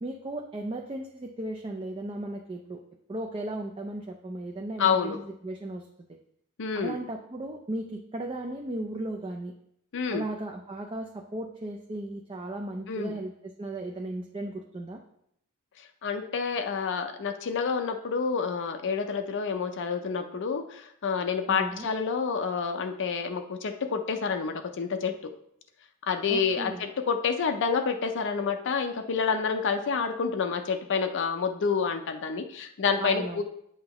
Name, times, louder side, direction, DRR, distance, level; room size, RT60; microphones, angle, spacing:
voice 1, 0.0-2.8 3.1-6.2 6.7-9.5 10.1-15.0 21.5-21.9 26.3-26.8 33.0-33.4, right 1 dB, 25° right, 1 dB, 0.5 m, -36 dB
voice 2, 4.8-5.2 6.6-7.0 9.9-10.2 12.9-13.2 16.0-25.3 26.1-33.4, left 5 dB, 55° left, 6 dB, 0.5 m, -28 dB
8.6 x 5.7 x 3.0 m, 0.74 s
head